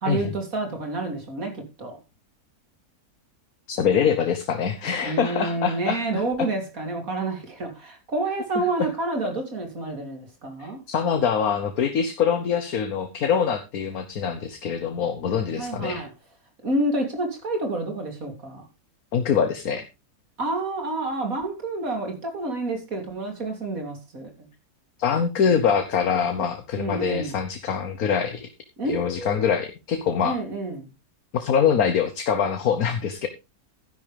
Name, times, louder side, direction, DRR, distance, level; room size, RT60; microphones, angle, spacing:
voice 1, 0.0-2.0 5.0-10.8 15.6-16.1 16.6-18.6 20.4-24.3 26.8-27.3 28.8-29.6 30.2-30.9, right 2 dB, 60° right, 3.5 m, -29 dB
voice 2, 3.7-6.2 8.5-8.6 10.6-16.0 19.1-19.8 25.0-28.5 28.8-30.4 31.3-33.3, left 7 dB, 70° left, 1.5 m, -24 dB
12.5 x 10.5 x 3.4 m
omnidirectional pair, 1.6 m